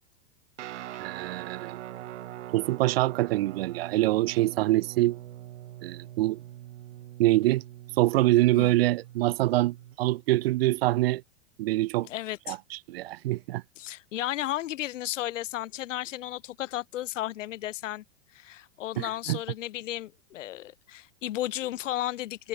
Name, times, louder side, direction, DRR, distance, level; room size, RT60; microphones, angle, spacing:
Guitar, 0.6-10.0, right 13 dB, 70° right, 1.8 m, -42 dB
voice 1, 1.0-1.8 2.5-5.2 5.8-6.4 7.2-7.6 8.0-11.2 11.6-12.1 12.5-13.6 19.0-19.4, right 17 dB, 55° right, 0.5 m, -25 dB
voice 2, 12.0-12.6 13.8-18.0 18.3-22.5, left 14 dB, 80° left, 0.9 m, -34 dB
supercardioid pair, 155°, 37 cm